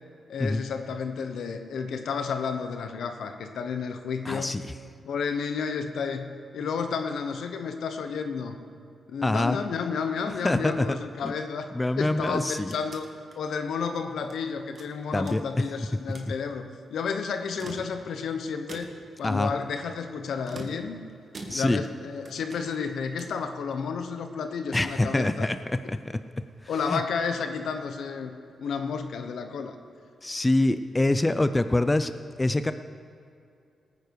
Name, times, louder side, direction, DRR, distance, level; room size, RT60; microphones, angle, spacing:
voice 1, 0.3-4.6 5.0-8.6 9.1-11.7 12.0-13.1 13.3-18.9 19.2-21.0 21.5-25.5 26.7-29.7, left 5 dB, 80° left, 6 dB, 1.1 m, -31 dB
voice 2, 4.3-4.7 9.2-9.6 10.4-11.0 11.2-11.3 11.7-12.7 15.1-15.4 19.2-19.5 21.5-21.8 24.7-25.6 25.9-26.2 26.9-27.0 30.2-32.1 32.4-32.7, left 2 dB, 20° left, 11 dB, 0.5 m, -25 dB
sound 1, 12.2-14.4 14.8-15.7 16.0-16.4 17.4-18.2 18.7-19.2 20.4-22.0 22.2-23.5, right 2 dB, 50° right, 1.7 m, -45 dB
18.5 x 9.7 x 4.8 m, 2.5 s
cardioid pair, 75°, 0 cm